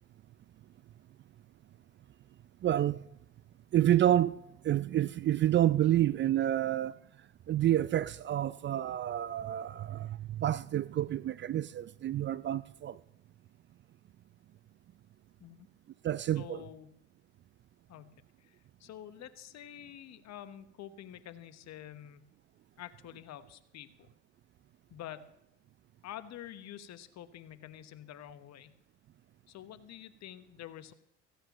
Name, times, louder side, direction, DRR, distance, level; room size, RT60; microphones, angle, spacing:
voice 1, 2.6-3.0 3.7-6.9 7.5-13.0 16.0-16.6, right 12 dB, 35° right, 0.4 m, -29 dB
voice 2, 16.4-16.9 17.9-22.2 22.8-24.1 24.9-25.3 26.0-28.7 29.5-30.9, left 11 dB, 50° left, 1.2 m, -48 dB
17.0 x 15.5 x 3.1 m
hypercardioid pair, 70°, 34 cm